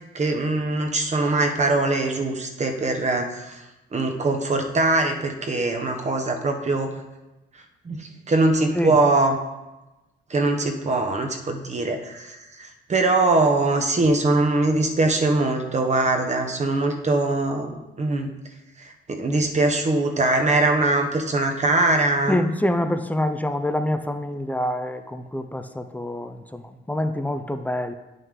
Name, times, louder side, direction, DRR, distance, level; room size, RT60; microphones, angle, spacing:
voice 1, 0.1-3.6 3.9-6.9 7.8-9.4 10.3-18.3 18.8-22.4, right 2 dB, 35° right, 4 dB, 1.1 m, -22 dB
voice 2, 22.3-27.9, left 1 dB, 10° left, 8 dB, 0.5 m, -26 dB
9.5 x 5.5 x 3.7 m, 1.0 s
cardioid pair, 90°, 20 cm